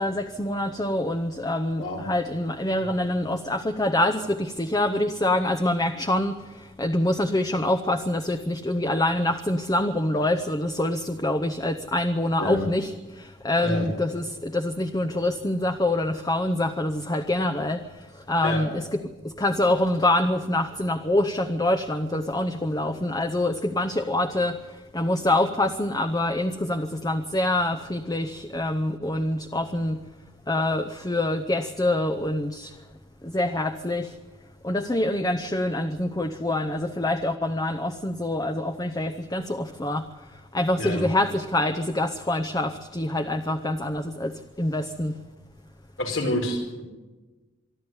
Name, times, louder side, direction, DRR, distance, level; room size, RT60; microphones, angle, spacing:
voice 1, 0.0-18.8 19.2-30.0 30.5-32.8 33.2-34.2 34.6-40.1 40.3-45.2, left 1 dB, 20° left, 8 dB, 0.8 m, -26 dB
voice 2, 1.8-2.1 12.4-12.6 13.6-13.9 18.4-18.6 40.8-41.1 46.0-46.8, left 1 dB, 85° left, 2 dB, 5.4 m, -28 dB
24.5 x 12.5 x 9.6 m, 1.2 s
head